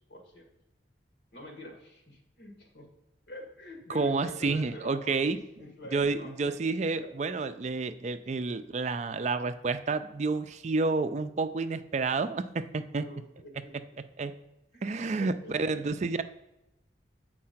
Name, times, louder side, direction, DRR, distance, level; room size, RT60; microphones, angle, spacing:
voice 1, 0.1-0.5 1.3-2.9 3.3-6.5 6.9-7.1 13.0-13.7 14.7-14.8 15.2-15.6, left 1 dB, 85° left, 3 dB, 1.8 m, -46 dB
voice 2, 3.9-5.4 5.9-13.1 14.2-14.4 14.8-16.2, right 3 dB, 40° right, 11 dB, 0.4 m, -30 dB
7.6 x 4.7 x 5.7 m, 0.91 s
head